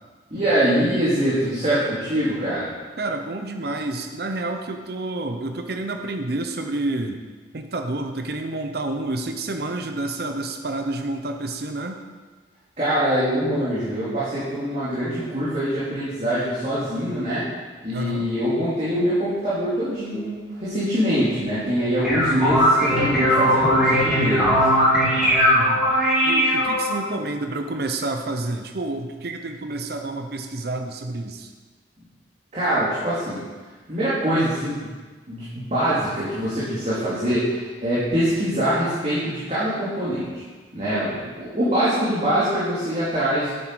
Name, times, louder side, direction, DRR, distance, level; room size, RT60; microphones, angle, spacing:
voice 1, 0.3-2.7 12.8-17.4 17.8-24.6 32.5-33.4 33.9-34.9 35.3-40.4 40.7-43.5, equal, 40° right, -11 dB, 2.6 m, -24 dB
voice 2, 3.0-7.2 7.5-12.0 17.9-18.3 25.5-25.8 26.2-31.5, right 2 dB, 60° right, 5 dB, 0.8 m, -29 dB
sound 1, 21.8-27.0, equal, 5° right, 3.0 m, -19 dB
9.6 x 8.0 x 4.7 m, 1.4 s
head